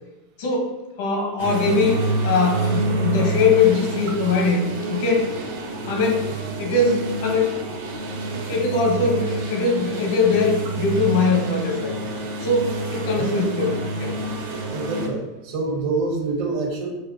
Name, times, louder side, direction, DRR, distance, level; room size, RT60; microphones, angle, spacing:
voice 1, 0.4-5.3 5.9-6.3 6.6-7.5 8.5-12.0 12.4-14.2, left 4 dB, 70° left, 2 dB, 1.0 m, -21 dB
sound 1, 1.4-15.1, right 3 dB, 85° right, 0.9 m, -28 dB
voice 2, 14.7-16.9, right 3 dB, 60° right, 2 dB, 1.0 m, -26 dB
5.5 x 2.5 x 2.8 m, 0.99 s
supercardioid pair, 125°, 0 cm